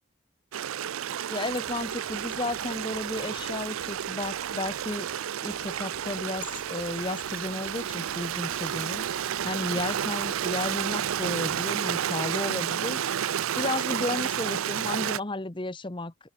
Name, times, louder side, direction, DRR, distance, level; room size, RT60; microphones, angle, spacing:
Stream, 0.5-15.2, right 9 dB, 85° right, 0.5 m, -31 dB
voice 1, 1.3-5.1 5.4-16.3, left 2 dB, 25° left, 1.0 m, -33 dB
sound 1, 1.5-11.6, left 1 dB, 80° left, 7.2 m, -56 dB
open air
head